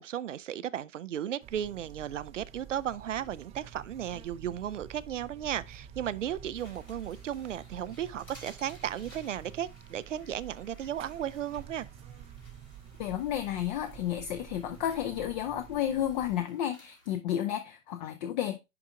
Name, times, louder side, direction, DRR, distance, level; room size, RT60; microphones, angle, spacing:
voice 1, 0.0-11.9, right 10 dB, 65° right, 0.6 m, -35 dB
Buzz, 1.4-16.4, right 9 dB, 15° right, 0.5 m, -49 dB
sound 1, 6.5-17.1, left 1 dB, 90° left, 3.6 m, -58 dB
voice 2, 13.0-18.6, left 11 dB, 35° left, 0.7 m, -32 dB
10.5 x 3.6 x 3.6 m
figure-of-eight pair, 100°, 40 cm